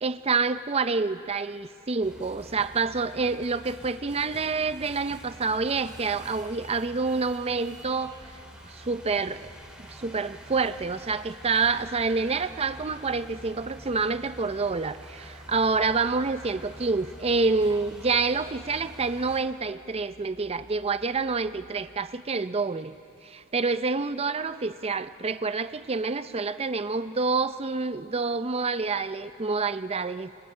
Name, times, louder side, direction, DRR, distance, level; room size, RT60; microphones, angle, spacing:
voice 1, 0.0-8.2 8.6-9.5 9.9-23.0 23.2-30.3, right 4 dB, 30° right, 12 dB, 0.6 m, -27 dB
sound 1, 2.0-19.4, equal, 5° right, 2.4 m, -47 dB
sound 2, 7.6-22.1, equal, 45° right, 3.0 m, -58 dB
29.0 x 25.5 x 4.4 m, 2.5 s
head